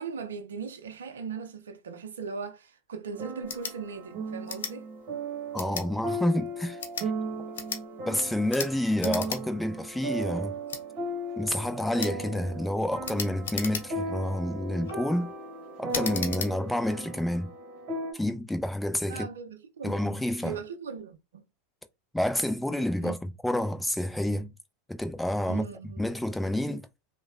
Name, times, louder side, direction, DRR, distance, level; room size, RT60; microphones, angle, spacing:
voice 1, 0.0-4.9 19.1-20.1 20.4-21.4 23.0-23.2 25.5-26.0, right 6 dB, 85° right, 0.5 m, -39 dB
sound 1, 3.1-18.1, right 2 dB, 50° right, 1.0 m, -36 dB
sound 2, 3.4-3.8 4.5-4.7 5.5-5.9 6.7-7.1 7.5-7.8 8.5-8.7 9.0-9.4 9.8-9.9 10.7-10.8 12.0-12.2 13.0-14.1 14.7-15.0 15.9-16.5, left 6 dB, 80° left, 0.6 m, -35 dB
voice 2, 5.5-6.8 8.1-10.6 11.4-15.3 15.8-17.5 18.1-19.3 19.8-20.6 22.1-24.5 24.9-25.6 26.0-26.9, left 1 dB, 5° left, 0.5 m, -29 dB
3.1 x 2.1 x 2.3 m
hypercardioid pair, 95°, 0 cm